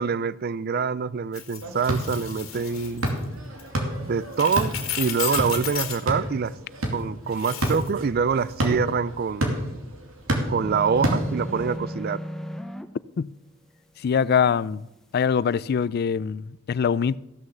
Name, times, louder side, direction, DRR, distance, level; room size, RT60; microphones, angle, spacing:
voice 1, 0.0-3.0 4.0-6.5 6.9-9.6 10.5-12.2, right 5 dB, 50° right, 0.4 m, -25 dB
sound 1, 1.3-3.2 3.6-3.7 4.3-6.0 7.3-7.9, left 10 dB, 85° left, 1.9 m, -33 dB
sound 2, 1.6-11.8, right 1 dB, 80° right, 2.5 m, -30 dB
sound 3, 10.6-12.9, equal, ahead, 0.6 m, -34 dB
voice 2, 14.0-14.9 15.1-17.2, left 6 dB, 50° left, 0.3 m, -23 dB
15.0 x 6.3 x 7.1 m
head